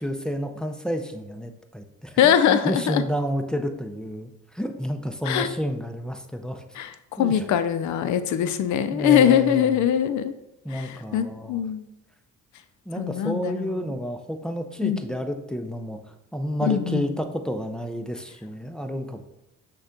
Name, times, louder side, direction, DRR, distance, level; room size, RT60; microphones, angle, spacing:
voice 1, 0.0-4.3 4.5-6.6 7.2-7.4 8.9-9.9 10.6-11.6 12.9-16.0 16.3-19.2, equal, 5° left, 5 dB, 0.4 m, -30 dB
voice 2, 2.2-3.0 5.2-5.5 6.7-10.3 10.7-11.9 13.0-13.9 14.8-15.1 16.6-17.1, left 9 dB, 70° left, 11 dB, 0.5 m, -22 dB
6.2 x 2.3 x 3.7 m, 0.86 s
cardioid pair, 90°, 30 cm